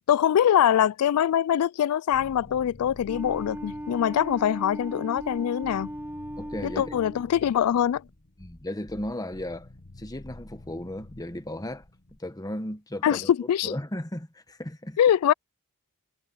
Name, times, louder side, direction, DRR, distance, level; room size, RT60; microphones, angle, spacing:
voice 1, 0.1-5.9 6.8-8.0 13.0-13.7 15.0-15.3, left 10 dB, 75° left, 0.3 m, -23 dB
sound 1, 2.1-12.2, left 1 dB, 45° left, 1.4 m, -49 dB
Wind instrument woodwind instrument, 3.1-7.3, equal, 10° right, 4.5 m, -37 dB
voice 2, 6.4-7.0 8.4-9.7 10.0-11.8 12.2-13.3 13.6-15.0, left 1 dB, 15° left, 1.3 m, -35 dB
head